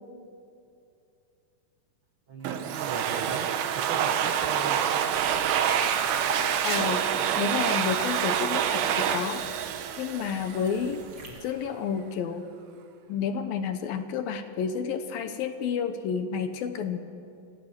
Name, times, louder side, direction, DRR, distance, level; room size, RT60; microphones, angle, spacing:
voice 1, 2.3-4.9, right 4 dB, 65° right, 2 dB, 1.3 m, -39 dB
Domestic sounds home sounds, 2.4-10.9, right 9 dB, 80° right, 3.1 m, -27 dB
sound 1, 5.1-11.5, right 2 dB, 30° right, 3.1 m, -43 dB
voice 2, 6.6-7.1 7.4-9.4 10.0-11.0 11.4-12.5 13.1-17.0, left 7 dB, 70° left, 8 dB, 2.7 m, -30 dB
26.5 x 17.0 x 7.9 m, 2.6 s
omnidirectional pair, 4.6 m